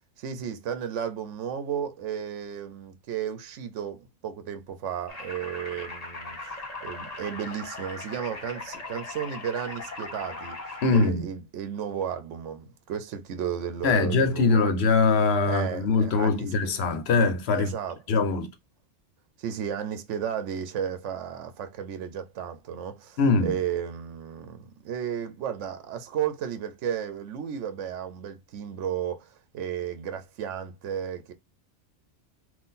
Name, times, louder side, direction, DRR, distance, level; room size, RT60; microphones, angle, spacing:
voice 1, 0.2-6.6 6.8-10.6 10.9-14.7 15.4-16.7 17.5-18.3 19.4-31.3, right 8 dB, 85° right, 1.0 m, -33 dB
sound 1, 5.1-11.1, left 2 dB, 35° left, 1.3 m, -39 dB
voice 2, 10.8-11.3 13.8-17.7 18.1-18.5 23.2-23.6, left 4 dB, 65° left, 0.9 m, -22 dB
3.7 x 2.5 x 4.0 m
omnidirectional pair, 1.2 m